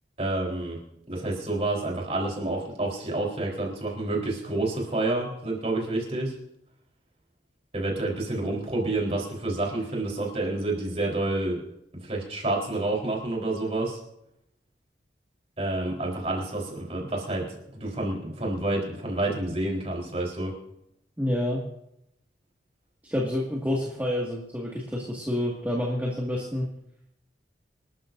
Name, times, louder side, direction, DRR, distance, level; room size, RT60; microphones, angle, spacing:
voice 1, 0.2-0.8 1.1-6.3 7.7-11.6 12.0-14.0 15.6-20.5, right 2 dB, 35° right, -1 dB, 4.1 m, -29 dB
voice 2, 21.2-21.6 23.0-26.7, left 1 dB, 10° right, -5 dB, 2.0 m, -28 dB
26.5 x 12.5 x 2.7 m, 0.80 s
head